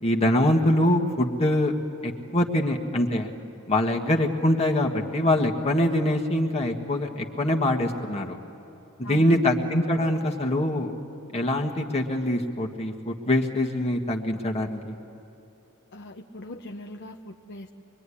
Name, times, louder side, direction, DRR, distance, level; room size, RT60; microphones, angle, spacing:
voice 1, 0.0-1.7 2.0-3.3 3.7-8.4 9.1-10.9 11.3-14.9, left 1 dB, 30° left, 0 dB, 1.7 m, -24 dB
voice 2, 9.0-9.5 15.9-17.7, left 1 dB, 55° left, 2 dB, 0.9 m, -39 dB
24.0 x 23.5 x 10.0 m, 2.9 s
head